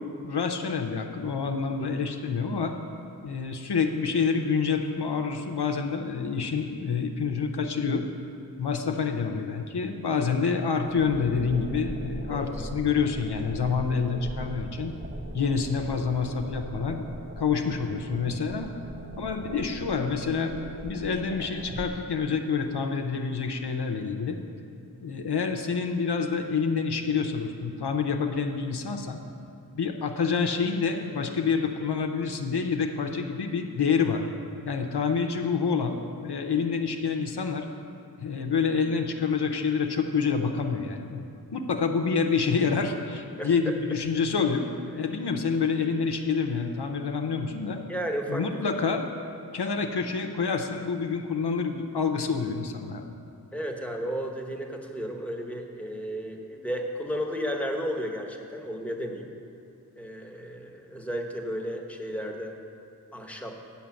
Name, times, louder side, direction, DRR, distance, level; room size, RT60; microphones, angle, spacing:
voice 1, 0.2-2.7 3.2-8.0 8.6-14.9 15.3-17.0 17.4-18.7 19.2-24.4 25.0-29.2 29.7-34.2 34.6-36.0 36.2-37.7 38.2-41.2 41.5-44.7 44.9-47.8 48.3-49.0 49.5-53.1, left 5 dB, 85° left, 4 dB, 0.6 m, -27 dB
sound 1, 10.8-21.9, right 1 dB, 30° right, 0.6 m, -40 dB
voice 2, 12.3-12.7 43.4-43.7 47.9-48.4 53.5-59.3 60.0-62.5 63.1-63.6, equal, 5° left, 1 dB, 0.9 m, -33 dB
7.5 x 5.8 x 7.0 m, 2.5 s
wide cardioid pair, 40°, 39 cm